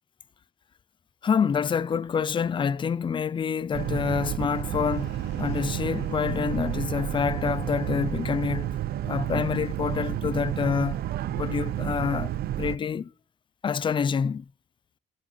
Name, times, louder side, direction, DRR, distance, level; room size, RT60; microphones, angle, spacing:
voice 1, 1.2-8.7 9.1-11.0 11.3-12.3 12.6-13.1 13.6-14.5, left 6 dB, 30° left, 0.6 m, -27 dB
Boat Water vehicle, 3.7-12.8, right 12 dB, 65° right, 0.8 m, -31 dB
sound 1, 4.1-7.7, left 14 dB, 80° left, 1.0 m, -49 dB
13.5 x 7.6 x 7.7 m
cardioid pair, 110°, 17 cm